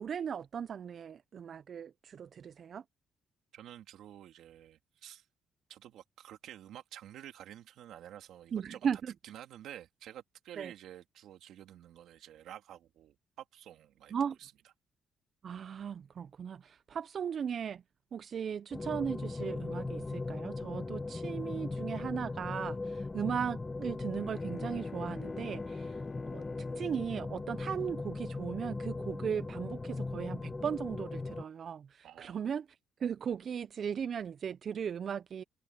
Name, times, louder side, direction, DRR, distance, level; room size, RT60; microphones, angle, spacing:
voice 1, 0.0-2.8 8.5-9.1 10.6-10.7 14.1-14.4 15.4-17.8 18.1-35.4, right 7 dB, 55° right, 0.4 m, -37 dB
voice 2, 3.5-5.2 5.7-8.8 9.2-14.1 14.4-14.5 32.0-32.4, right 11 dB, 80° right, 2.9 m, -50 dB
sound 1, 18.7-31.4, left 3 dB, 25° left, 0.9 m, -39 dB
Bowed string instrument, 24.0-28.7, left 5 dB, 40° left, 1.3 m, -49 dB
cardioid pair, 90°, 0 cm